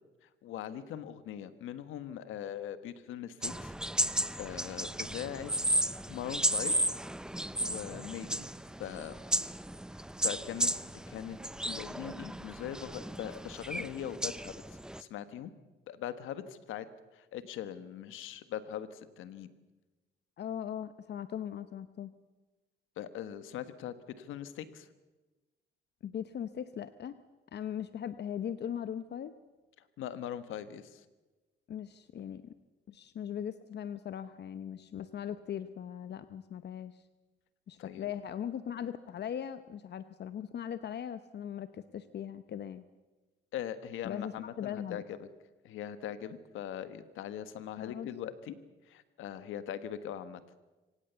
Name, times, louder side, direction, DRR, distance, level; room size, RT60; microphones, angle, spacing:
voice 1, 0.4-3.7 4.4-5.5 5.9-6.7 7.6-8.5 8.8-9.1 10.2-10.7 11.1-11.4 11.6-15.5 15.9-16.9 17.1-19.5 23.0-24.9 30.0-31.0 37.8-38.1 43.5-45.3 45.6-48.5 48.9-50.4, left 10 dB, 85° left, 12 dB, 1.4 m, -41 dB
sound 1, 3.4-15.0, right 1 dB, 5° right, 0.6 m, -34 dB
voice 2, 20.4-22.1 26.0-27.2 27.5-29.3 31.7-32.5 32.9-37.0 37.7-42.8 44.0-45.0 47.8-48.1, left 9 dB, 60° left, 12 dB, 0.9 m, -39 dB
25.5 x 17.0 x 7.0 m, 1.2 s
cardioid pair, 90°, 20 cm